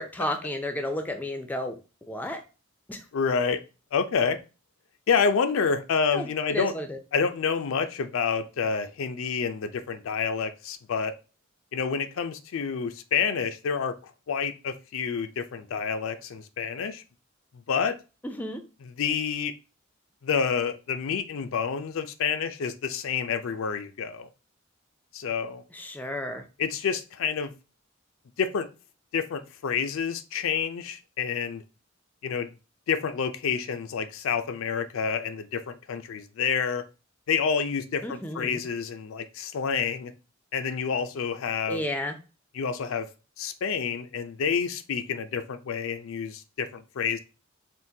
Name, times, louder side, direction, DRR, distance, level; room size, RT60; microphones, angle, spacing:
voice 1, 0.0-1.7 2.1-2.4 2.9-3.0 6.1-7.0 18.2-18.6 25.7-26.4 38.0-38.6 41.7-42.2, left 1 dB, 10° left, 0.4 m, -32 dB
voice 2, 3.1-3.6 3.9-4.4 5.1-6.7 7.1-11.1 11.7-14.0 14.3-17.0 17.7-18.0 18.8-19.5 20.2-24.3 25.1-25.6 26.6-27.5 28.4-28.7 29.1-31.6 32.2-32.5 32.9-36.8 37.3-40.1 40.5-41.8 42.5-43.1 43.4-47.2, left 6 dB, 75° left, 0.4 m, -28 dB
3.6 x 2.5 x 2.6 m
head